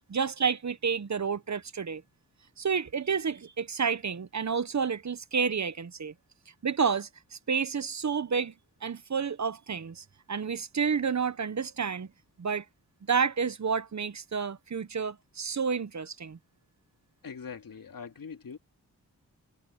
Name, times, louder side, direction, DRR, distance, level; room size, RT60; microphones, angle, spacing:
voice 1, 0.1-2.0 2.6-6.1 6.6-8.5 8.8-12.1 12.4-12.6 13.1-16.4, right 6 dB, 50° right, 1.2 m, -30 dB
voice 2, 17.2-18.6, left 6 dB, 65° left, 2.9 m, -42 dB
cardioid pair, 45°, 36 cm